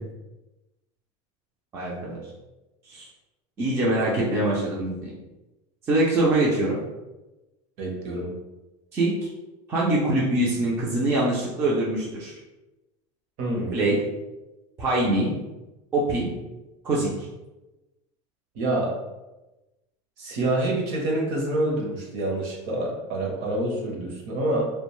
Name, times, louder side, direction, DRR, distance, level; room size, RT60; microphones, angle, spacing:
voice 1, 1.7-2.2 2.9-3.1 3.6-5.1 5.8-6.8 8.9-9.3 9.7-12.3 13.7-14.0 14.8-15.3 15.9-16.3 16.8-17.1, right 1 dB, 15° right, -5 dB, 0.3 m, -23 dB
voice 2, 7.8-8.3 13.4-13.8 18.5-18.9 20.2-24.7, right 1 dB, 50° right, -1 dB, 0.7 m, -27 dB
2.4 x 2.2 x 3.0 m, 1.1 s
cardioid pair, 170°, 15 cm